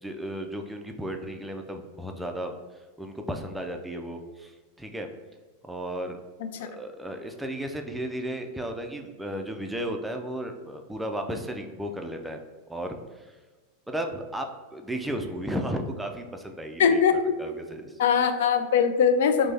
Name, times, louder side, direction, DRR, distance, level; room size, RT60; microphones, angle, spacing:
voice 1, 0.0-2.6 3.0-5.1 5.6-6.2 6.6-12.4 12.7-13.3 13.9-17.0 17.4-18.0, right 1 dB, 5° right, 4 dB, 0.3 m, -34 dB
voice 2, 16.8-17.3 18.0-19.5, left 7 dB, 75° left, 9 dB, 0.3 m, -21 dB
3.2 x 2.0 x 3.3 m, 1.3 s
hypercardioid pair, 120°, 0 cm